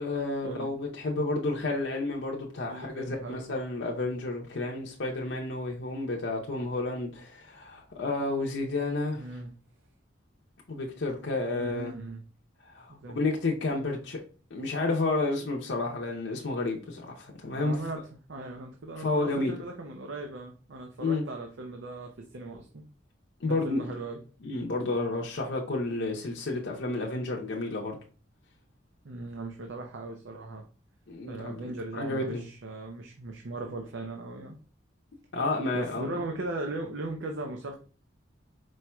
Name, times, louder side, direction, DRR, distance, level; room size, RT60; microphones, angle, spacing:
voice 1, 0.0-9.2 10.7-11.9 12.6-14.2 14.5-17.8 19.0-19.5 21.0-21.3 23.4-23.8 24.4-28.0 31.1-31.6 31.9-32.4 35.3-36.1, left 2 dB, 70° left, 0.7 m, -31 dB
voice 2, 2.7-3.5 9.2-9.5 11.5-12.2 12.9-13.2 17.6-18.0 18.3-22.8 23.5-24.2 29.0-30.6 31.3-34.6 35.7-37.7, right 2 dB, 75° right, 0.6 m, -38 dB
4.6 x 4.4 x 2.2 m
head